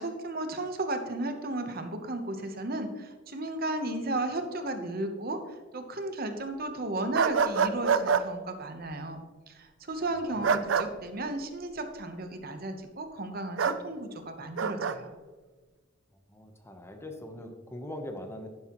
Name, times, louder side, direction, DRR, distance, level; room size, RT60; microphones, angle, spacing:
voice 1, 0.0-5.4 5.7-9.2 9.5-15.1, right 2 dB, 50° right, 7 dB, 1.0 m, -34 dB
sound 1, 7.1-8.2 10.4-10.9 13.6-13.8 14.6-15.0, right 6 dB, 70° right, 0.5 m, -25 dB
voice 2, 10.0-10.7 16.3-18.5, left 1 dB, 15° left, 4 dB, 0.9 m, -42 dB
11.0 x 10.5 x 3.1 m, 1.4 s
head